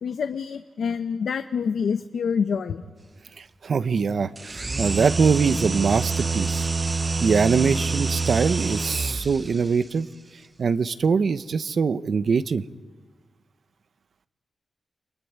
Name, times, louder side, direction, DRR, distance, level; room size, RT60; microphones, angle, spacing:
voice 1, 0.0-2.8, left 6 dB, 80° left, 8 dB, 0.9 m, -26 dB
voice 2, 3.4-6.7 7.2-10.1 10.6-12.6, right 5 dB, 60° right, 12 dB, 0.8 m, -23 dB
sound 1, 4.4-9.6, right 3 dB, 25° right, 0.9 m, -27 dB
29.0 x 21.5 x 9.5 m, 1.4 s
wide cardioid pair, 130°, 0 cm